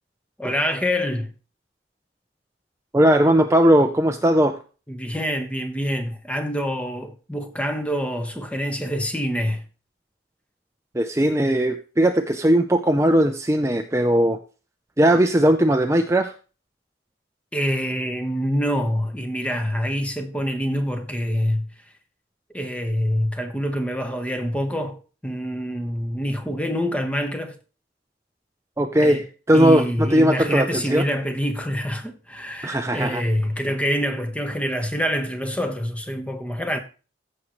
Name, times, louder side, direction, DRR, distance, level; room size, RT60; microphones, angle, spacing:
voice 1, 0.4-1.3 4.9-9.6 17.5-21.7 22.5-27.6 29.0-29.2 29.5-36.8, equal, 5° left, 1.1 m, -26 dB
voice 2, 2.9-4.6 10.9-14.4 15.0-16.3 28.8-29.2 29.5-31.1 32.6-33.2, right 1 dB, 15° right, 0.5 m, -18 dB
14.5 x 6.5 x 3.1 m
head